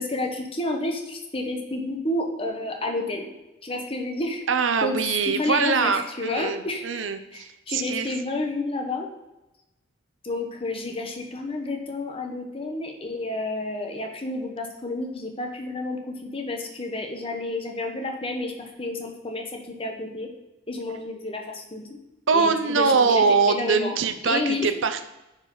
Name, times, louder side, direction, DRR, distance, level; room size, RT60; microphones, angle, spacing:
voice 1, 0.0-3.3 3.6-4.4 4.8-5.0 5.3-7.0 7.3-9.1 10.2-20.3 20.7-22.0 22.3-24.0 24.2-24.7, left 2 dB, 30° left, 3 dB, 1.0 m, -30 dB
voice 2, 4.5-8.1 22.3-25.0, right 5 dB, 70° right, 9 dB, 0.6 m, -23 dB
9.2 x 4.9 x 3.8 m, 0.98 s
head